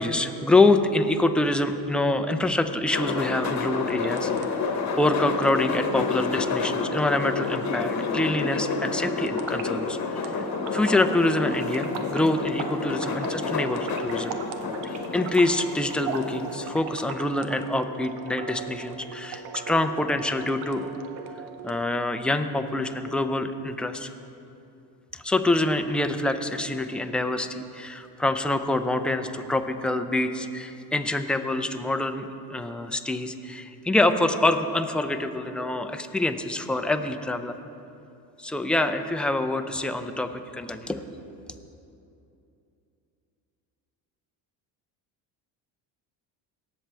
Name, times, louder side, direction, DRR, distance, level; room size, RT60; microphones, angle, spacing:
voice 1, 0.0-4.5 5.0-10.4 10.7-14.4 15.1-20.8 21.6-24.1 25.1-37.6 38.4-41.0, left 2 dB, ahead, 7 dB, 0.5 m, -25 dB
sound 1, 2.9-16.8, left 4 dB, 40° left, 1.1 m, -30 dB
sound 2, 3.8-21.8, right 5 dB, 85° right, 1.0 m, -39 dB
18.0 x 7.5 x 3.4 m, 2.7 s
supercardioid pair, 100°, 44 cm